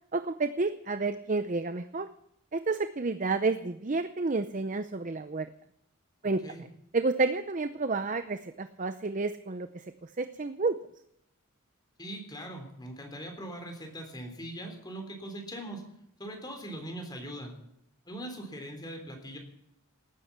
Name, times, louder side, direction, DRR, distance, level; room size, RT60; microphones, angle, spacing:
voice 1, 0.1-2.1 2.5-5.5 6.2-6.7 6.9-10.8, right 3 dB, 35° right, 10 dB, 0.6 m, -30 dB
voice 2, 12.0-15.8 16.2-17.5 18.1-19.4, right 1 dB, 20° left, 4 dB, 3.5 m, -41 dB
18.5 x 10.0 x 7.3 m, 0.76 s
head